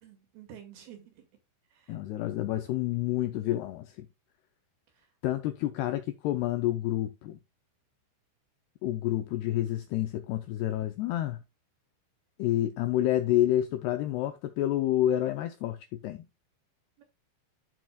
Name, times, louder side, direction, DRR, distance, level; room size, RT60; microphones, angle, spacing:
voice 1, 0.0-1.3 1.7-2.0 4.9-5.1 17.0-17.1, right 9 dB, 60° right, 3.7 m, -50 dB
voice 2, 1.9-4.1 5.2-7.4 8.8-11.4 12.4-16.2, left 13 dB, 90° left, 2.3 m, -29 dB
12.5 x 6.1 x 2.4 m
omnidirectional pair, 5.6 m